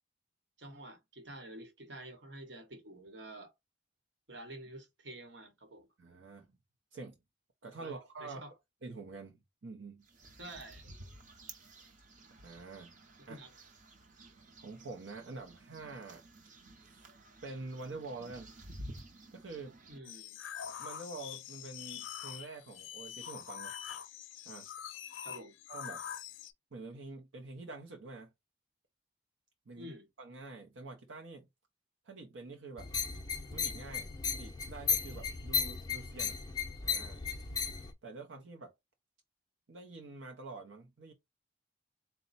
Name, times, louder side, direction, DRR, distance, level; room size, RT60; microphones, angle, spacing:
voice 1, 0.6-3.5 4.3-5.9 7.8-8.5 10.4-10.8 13.3-13.5 19.9-20.4 25.2-25.6 29.7-30.1, right 1 dB, 70° right, 1.1 m, -49 dB
voice 2, 6.0-6.5 6.9-7.1 7.6-8.4 8.8-10.0 12.3-12.9 13.3-13.4 14.6-16.3 16.8-17.1 17.4-18.5 19.3-19.8 20.8-23.7 24.5-24.7 25.7-26.0 26.7-28.3 29.7-29.9 30.2-31.5 32.0-32.9 33.5-36.4 36.8-37.2 38.0-38.7 39.7-41.1, right 3 dB, 85° right, 0.7 m, -46 dB
sound 1, 10.0-20.0, right 1 dB, 40° right, 0.7 m, -53 dB
sound 2, 20.0-26.5, left 9 dB, 90° left, 0.4 m, -44 dB
sound 3, 32.8-37.9, left 6 dB, 20° left, 0.5 m, -35 dB
4.1 x 2.2 x 3.9 m
head